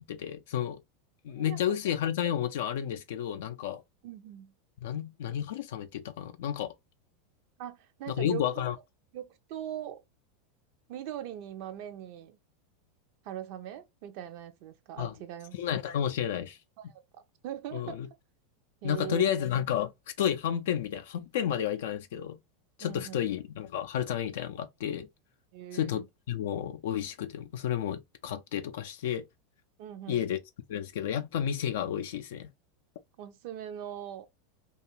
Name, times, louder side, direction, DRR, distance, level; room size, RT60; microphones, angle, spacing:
voice 1, 0.1-0.8 1.2-3.8 4.8-6.7 8.1-8.8 15.0-15.1 15.5-16.6 17.7-18.1 18.8-19.9 20.2-22.4 22.8-25.1 25.7-29.2 30.1-30.4 30.7-32.5, left 10 dB, 70° left, 0.3 m, -31 dB
voice 2, 1.3-1.6 4.0-4.5 7.6-8.7 9.1-10.0 10.9-12.4 13.2-15.6 16.8-17.0 17.4-18.0 18.8-19.5 22.8-23.2 25.5-26.1 29.8-30.3 33.2-34.3, right 11 dB, 60° right, 0.5 m, -41 dB
2.4 x 2.3 x 2.9 m
hypercardioid pair, 90°, 0 cm